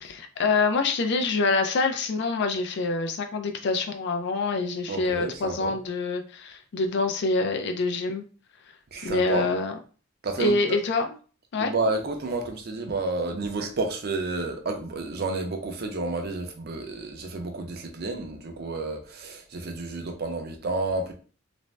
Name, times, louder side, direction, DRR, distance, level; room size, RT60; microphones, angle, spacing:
voice 1, 0.0-8.2 9.0-9.7 10.4-11.1 11.5-11.7, left 3 dB, 60° left, 0.4 m, -26 dB
voice 2, 4.9-5.8 8.9-9.5 10.2-10.6 11.6-21.1, right 3 dB, 50° right, 0.5 m, -30 dB
2.5 x 2.1 x 3.1 m
head